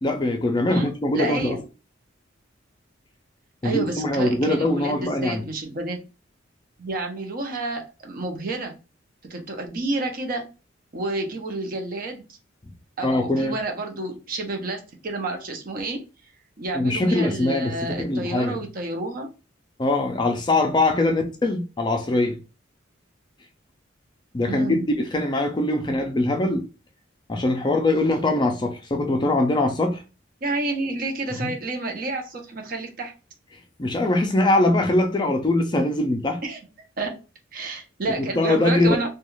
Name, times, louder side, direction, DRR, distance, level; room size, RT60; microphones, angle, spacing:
voice 1, 0.0-1.6 3.6-5.4 13.0-13.5 16.7-18.6 19.8-22.4 24.3-26.7 27.3-30.0 31.4-31.5 33.8-36.4 38.4-38.9, left 2 dB, 25° left, 0.4 m, -22 dB
voice 2, 1.1-1.6 3.6-6.0 6.8-8.8 9.3-10.4 10.9-12.4 13.0-16.0 16.6-19.3 20.9-21.2 24.5-24.9 30.4-33.1 36.4-36.6 37.0-37.2 37.5-39.1, right 2 dB, 45° right, 0.6 m, -30 dB
2.3 x 2.3 x 3.0 m
head